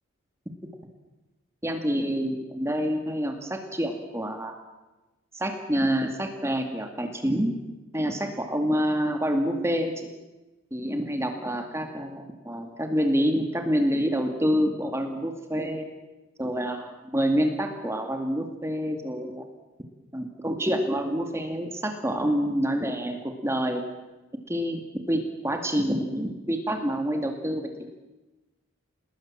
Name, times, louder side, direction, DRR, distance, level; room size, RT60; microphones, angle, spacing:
voice 1, 1.6-4.5 5.3-7.5 7.9-10.1 10.7-15.9 16.4-19.4 20.1-23.8 24.5-24.8 25.1-27.7, equal, 15° right, 4 dB, 2.3 m, -27 dB
28.5 x 20.5 x 7.5 m, 1.1 s
head